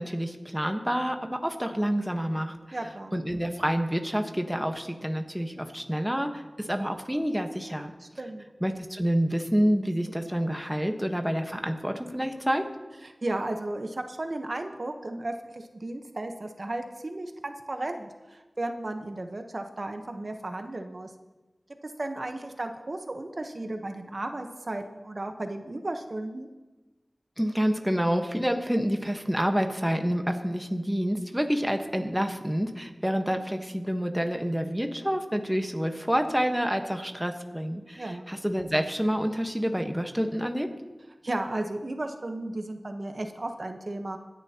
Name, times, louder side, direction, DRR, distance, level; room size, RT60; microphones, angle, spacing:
voice 1, 0.0-2.8 3.1-7.9 8.6-12.6 27.4-40.7, equal, 5° right, 5 dB, 1.2 m, -28 dB
voice 2, 2.7-3.1 8.0-8.4 13.0-21.1 21.8-26.5 38.0-38.2 41.2-44.2, right 2 dB, 60° right, 5 dB, 1.0 m, -34 dB
25.5 x 10.5 x 2.9 m, 1.2 s
wide cardioid pair, 50°, 0 cm